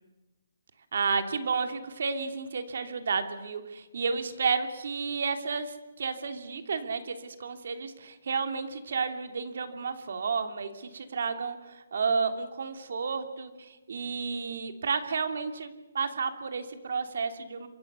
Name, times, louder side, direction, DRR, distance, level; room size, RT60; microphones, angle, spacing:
voice 1, 0.9-17.7, right 5 dB, 60° right, 8 dB, 2.8 m, -31 dB
26.5 x 25.0 x 6.9 m, 1.1 s
hypercardioid pair, 165°, 0 cm